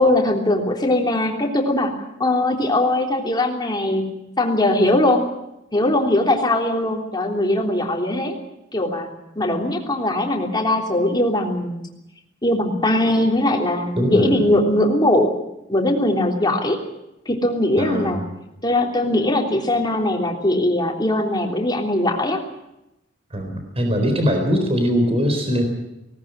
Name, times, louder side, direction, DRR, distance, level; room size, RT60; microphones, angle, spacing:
voice 1, 0.0-5.3 5.7-8.4 8.7-9.1 9.3-11.8 12.4-15.3 15.7-16.8 17.2-18.2 18.6-22.4, left 1 dB, 20° left, 1 dB, 3.4 m, -20 dB
voice 2, 14.0-14.5 17.8-18.2 23.3-25.7, equal, 30° right, 5 dB, 4.0 m, -21 dB
19.0 x 18.5 x 9.0 m, 0.88 s
head